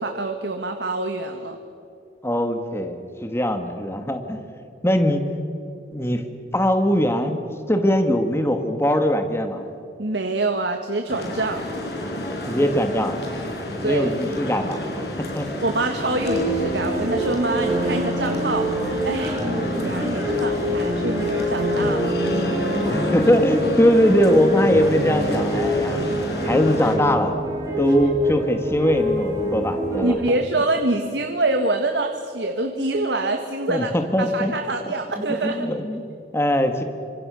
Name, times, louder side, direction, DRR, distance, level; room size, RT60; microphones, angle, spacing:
voice 1, 0.0-1.6 10.0-11.7 13.8-14.1 15.6-19.4 19.7-22.1 30.0-35.7, right 2 dB, 85° right, 5 dB, 1.8 m, -25 dB
voice 2, 2.2-4.4 4.8-5.2 5.9-6.2 6.5-7.4 7.7-9.7 12.5-13.2 13.8-14.8 15.3-15.6 22.9-26.0 26.4-27.3 27.8-30.4 33.7-34.5 35.2-36.1 36.3-36.8, equal, 15° left, 6 dB, 1.7 m, -21 dB
sound 1, 11.1-27.0, left 1 dB, 70° left, 5.1 m, -30 dB
sound 2, 16.2-30.1, equal, 20° right, 7.6 m, -25 dB
29.5 x 26.0 x 6.3 m, 2.7 s
head